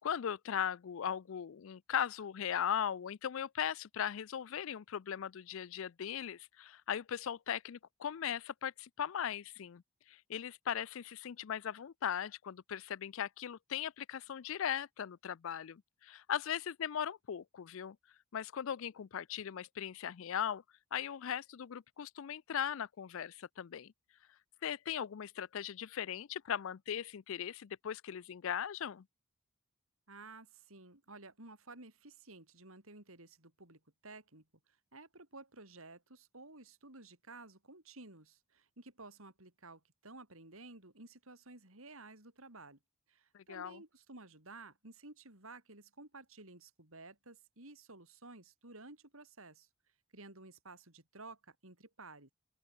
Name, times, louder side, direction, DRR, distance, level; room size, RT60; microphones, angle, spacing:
voice 1, 0.0-9.8 10.1-18.0 18.3-20.6 20.9-23.9 24.6-29.0 43.3-43.8, left 9 dB, 65° left, 0.4 m, -38 dB
voice 2, 30.1-42.8 43.1-49.7 50.1-52.3, right 3 dB, 75° right, 5.4 m, -54 dB
open air
head